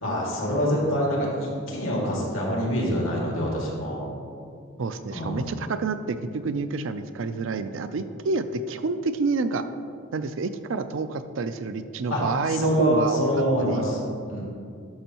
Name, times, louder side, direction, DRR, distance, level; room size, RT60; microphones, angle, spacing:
voice 1, 0.0-4.1 5.1-5.4 12.1-12.2 12.5-14.0 14.3-14.4, equal, 80° left, -3 dB, 2.0 m, -25 dB
voice 2, 4.8-9.7 10.1-13.3 13.6-13.8, right 4 dB, 70° right, 10 dB, 0.4 m, -28 dB
12.0 x 6.2 x 2.9 m, 2.4 s
head